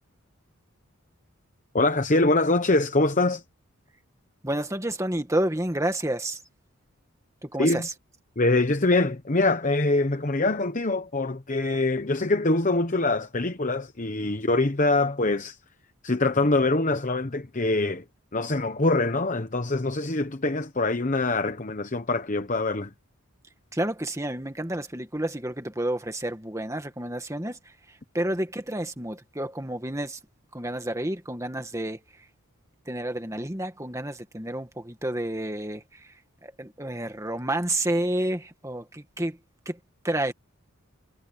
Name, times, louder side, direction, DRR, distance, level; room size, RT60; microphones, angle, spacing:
voice 1, 1.7-3.4 7.6-7.9 8.4-15.6 16.0-18.0 18.3-22.9, left 2 dB, 35° left, 1.0 m, -24 dB
voice 2, 4.4-6.4 7.4-7.9 23.7-27.6 28.1-30.2 30.5-32.0 32.9-36.1 36.4-39.4 39.7-39.8 40.0-40.3, right 1 dB, 15° right, 1.9 m, -30 dB
head